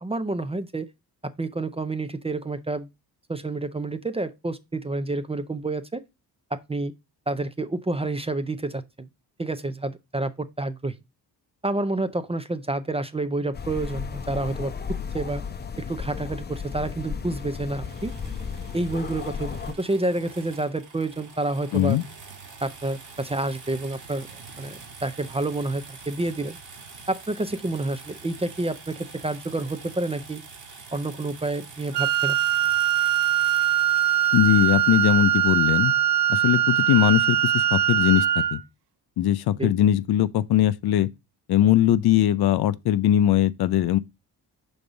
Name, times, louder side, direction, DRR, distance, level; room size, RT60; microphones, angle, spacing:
voice 1, 0.0-0.9 1.2-2.9 3.3-6.0 6.5-6.9 7.3-9.1 9.4-11.0 11.6-15.4 15.8-18.1 18.7-22.0 22.6-24.3 24.6-26.6 27.1-30.4 30.9-32.4 39.6-39.7, right 2 dB, 15° right, 0.5 m, -29 dB
sound 1, 13.5-19.7, left 6 dB, 25° left, 0.7 m, -34 dB
sound 2, 17.8-35.6, right 4 dB, 45° right, 1.6 m, -45 dB
voice 2, 21.7-22.0 34.3-35.9 36.3-38.6 39.2-41.1 41.5-44.0, left 12 dB, 65° left, 0.5 m, -20 dB
Wind instrument woodwind instrument, 31.9-38.6, right 11 dB, 75° right, 0.6 m, -22 dB
5.3 x 4.0 x 4.8 m
cardioid pair, 90°, 42 cm